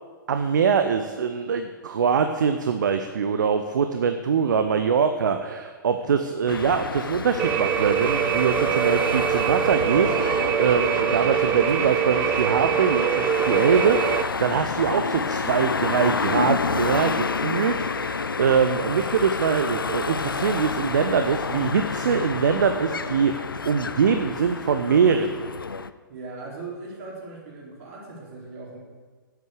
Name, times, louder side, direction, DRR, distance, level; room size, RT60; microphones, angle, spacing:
voice 1, 0.3-25.3, right 6 dB, 60° right, 8 dB, 0.8 m, -23 dB
sound 1, 6.5-25.9, left 5 dB, 75° left, 0.5 m, -29 dB
sound 2, 7.4-14.2, right 11 dB, 20° right, 0.5 m, -24 dB
voice 2, 18.7-19.0 26.1-28.8, right 3 dB, 40° right, -3 dB, 4.3 m, -39 dB
11.0 x 8.3 x 6.7 m, 1.5 s
figure-of-eight pair, 115°, 11 cm